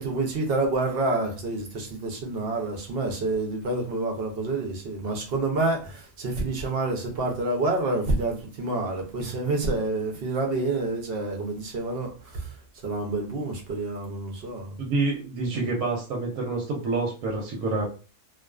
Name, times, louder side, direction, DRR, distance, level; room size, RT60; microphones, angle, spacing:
voice 1, 0.0-12.5 12.8-14.8, right 2 dB, 60° right, 0.6 m, -28 dB
voice 2, 14.8-17.8, right 3 dB, 90° right, 1.1 m, -27 dB
2.4 x 2.3 x 2.3 m
omnidirectional pair, 1.5 m